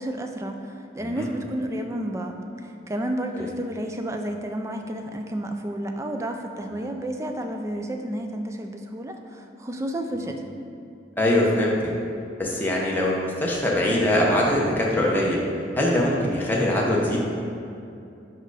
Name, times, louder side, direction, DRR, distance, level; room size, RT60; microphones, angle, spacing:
voice 1, 0.0-10.4, right 1 dB, 15° right, 4 dB, 0.3 m, -31 dB
voice 2, 11.2-11.8 12.4-15.4 15.7-17.2, left 1 dB, 10° left, -4 dB, 0.8 m, -22 dB
5.1 x 4.5 x 4.8 m, 2.6 s
head